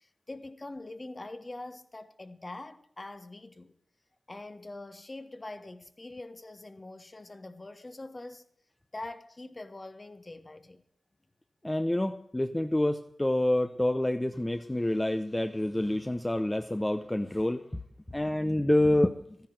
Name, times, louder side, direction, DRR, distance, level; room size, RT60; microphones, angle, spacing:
voice 1, 0.0-3.8 4.3-8.5 8.9-10.8, left 2 dB, 35° left, 1.2 m, -44 dB
voice 2, 11.6-17.8 18.1-19.1, left 1 dB, 15° left, 0.7 m, -27 dB
13.5 x 10.5 x 7.7 m
cardioid pair, 55°, 0 cm